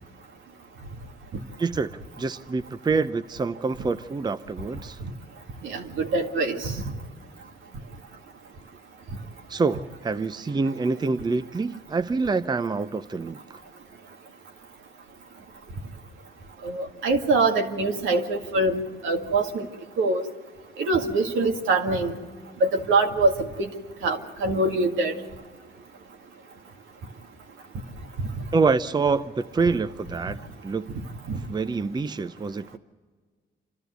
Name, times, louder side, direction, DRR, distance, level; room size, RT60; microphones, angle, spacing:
voice 1, 1.6-5.0 9.5-13.6 28.5-30.9 31.5-32.8, right 4 dB, 20° right, 11 dB, 0.6 m, -26 dB
voice 2, 5.6-6.9 16.6-19.7 20.0-20.3 20.8-22.2 22.6-23.7 24.0-25.1 28.2-28.4 31.3-31.4, right 2 dB, 80° right, 3 dB, 2.1 m, -24 dB
28.0 x 13.0 x 8.0 m, 1.6 s
cardioid pair, 90°, 20 cm